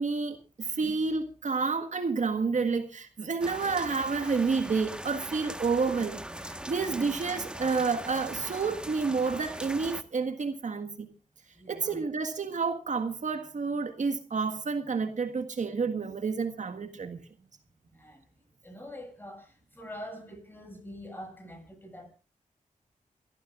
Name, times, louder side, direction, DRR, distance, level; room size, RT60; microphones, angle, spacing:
voice 1, 0.0-11.1 11.7-17.2, right 4 dB, 60° right, 1.6 m, -30 dB
sound 1, 3.4-10.0, right 1 dB, 5° right, 1.4 m, -40 dB
voice 2, 11.5-12.0 17.9-18.2 18.6-22.1, left 1 dB, 15° left, 7.5 m, -45 dB
27.5 x 14.0 x 2.5 m
cardioid pair, 75°, 14 cm